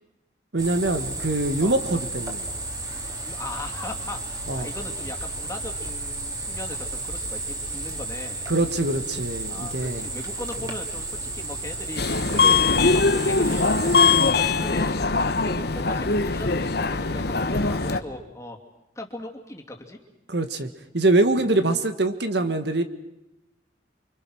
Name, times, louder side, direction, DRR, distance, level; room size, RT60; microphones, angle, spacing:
voice 1, 0.5-2.4 4.5-4.7 8.5-10.1 20.3-20.7 20.9-22.8, right 2 dB, 65° right, 9 dB, 1.7 m, -23 dB
sound 1, 0.6-14.3, right 2 dB, 20° right, 3.1 m, -33 dB
voice 2, 3.3-8.4 9.5-15.1 15.4-18.6 19.0-20.0 21.3-21.5, left 1 dB, 15° left, 2 dB, 2.7 m, -38 dB
Subway metro underground, 12.0-18.0, left 4 dB, 60° left, 1.2 m, -21 dB
29.0 x 25.0 x 6.3 m, 0.88 s
head